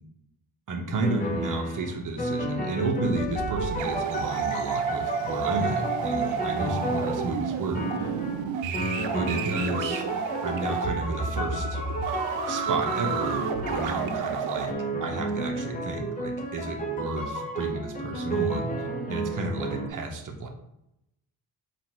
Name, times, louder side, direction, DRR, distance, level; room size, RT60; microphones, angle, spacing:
voice 1, 0.7-8.1 9.1-10.1 10.4-11.8 12.5-14.7 15.0-20.5, right 2 dB, 45° right, 4 dB, 0.9 m, -32 dB
sound 1, 1.0-7.5 7.7-8.4 8.7-14.3 14.7-19.9, right 1 dB, 20° left, 0.9 m, -32 dB
sound 2, 3.0-14.7, right 6 dB, 80° right, 0.6 m, -31 dB
3.9 x 2.5 x 4.4 m, 0.83 s
cardioid pair, 75°, 45 cm